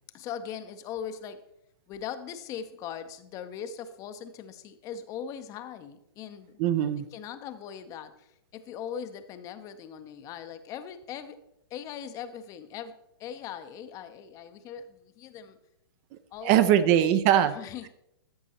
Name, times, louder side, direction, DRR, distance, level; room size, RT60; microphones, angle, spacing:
voice 1, 0.1-1.4 1.9-6.6 7.1-11.4 11.7-15.6 16.3-16.9 17.3-17.8, left 8 dB, 25° left, 11 dB, 0.6 m, -40 dB
voice 2, 6.6-7.1 16.4-17.6, right 10 dB, 30° right, 13 dB, 0.4 m, -21 dB
13.0 x 6.1 x 2.9 m, 0.82 s
hypercardioid pair, 125°, 13 cm